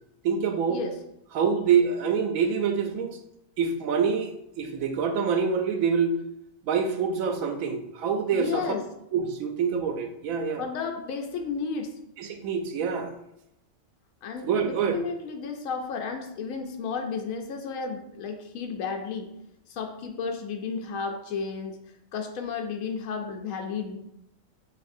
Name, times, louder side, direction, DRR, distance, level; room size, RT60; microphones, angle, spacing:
voice 1, 0.2-0.8 1.3-3.2 3.6-6.2 6.6-8.6 9.1-10.6 12.2-13.1 14.4-15.0, right 6 dB, 85° right, 7 dB, 1.0 m, -26 dB
voice 2, 8.3-8.8 10.6-12.0 14.2-19.3 19.7-21.8 22.1-24.0, left 5 dB, 85° left, 3 dB, 1.0 m, -33 dB
6.6 x 2.6 x 2.6 m, 0.84 s
omnidirectional pair, 1.4 m